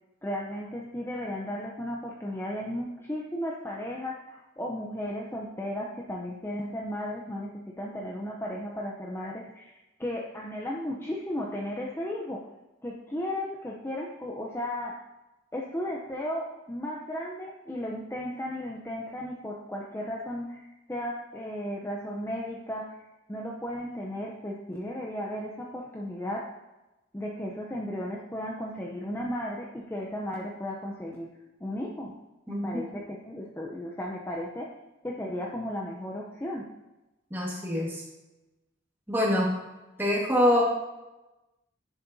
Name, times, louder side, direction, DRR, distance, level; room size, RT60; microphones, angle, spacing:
voice 1, 0.2-7.5 7.8-12.4 12.8-15.0 15.5-23.0 23.3-26.5 27.1-31.3 31.6-32.1 32.5-34.7 35.0-36.7, left 1 dB, 10° left, -2 dB, 0.6 m, -35 dB
voice 2, 32.5-32.8 37.3-38.0 39.1-39.5 40.0-40.6, left 1 dB, 10° right, -3 dB, 1.6 m, -25 dB
10.5 x 7.3 x 2.7 m, 1.0 s
head